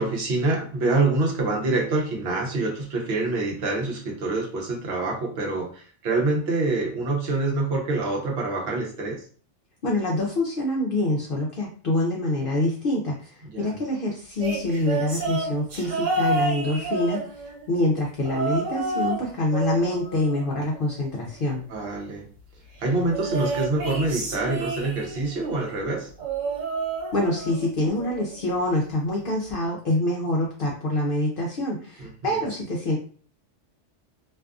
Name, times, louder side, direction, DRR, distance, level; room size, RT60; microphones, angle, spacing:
voice 1, 0.0-9.2 13.4-13.8 21.7-22.3 22.8-26.1 32.0-32.3, right 2 dB, 60° right, 0 dB, 1.0 m, -26 dB
voice 2, 9.8-17.2 17.7-21.7 27.1-33.0, left 1 dB, 60° left, -3 dB, 0.6 m, -25 dB
sound 1, 14.4-17.7 18.2-19.2 19.5-21.1 23.1-25.3 26.2-27.7 28.0-28.4 29.5-29.6, right 3 dB, 90° right, 1.1 m, -30 dB
2.6 x 2.4 x 2.3 m, 0.43 s
omnidirectional pair, 1.3 m